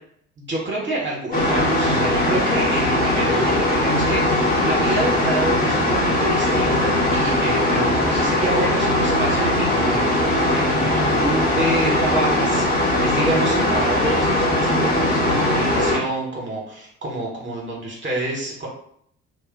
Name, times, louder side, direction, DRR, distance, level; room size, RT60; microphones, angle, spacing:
voice 1, 0.4-18.7, right 1 dB, 30° right, -3 dB, 1.0 m, -27 dB
sound 1, 1.3-16.0, left 1 dB, 25° left, 1.0 m, -20 dB
2.5 x 2.1 x 3.7 m, 0.68 s
figure-of-eight pair, 50°, 39 cm